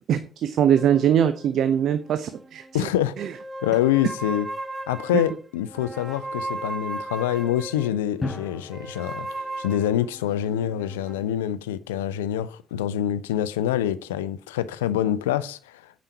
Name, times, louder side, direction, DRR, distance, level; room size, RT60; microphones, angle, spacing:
voice 1, 0.1-2.6 3.2-3.3, right 9 dB, 60° right, 0.6 m, -21 dB
sound 1, 0.7-2.8 3.2-8.0 8.7-11.3, right 2 dB, 25° right, 0.8 m, -37 dB
voice 2, 2.7-3.1 3.6-4.5 4.9-15.9, left 11 dB, 80° left, 0.4 m, -26 dB
Drum, 8.2-10.5, left 2 dB, 30° left, 4.1 m, -36 dB
8.9 x 5.0 x 5.8 m
figure-of-eight pair, 45°, 0 cm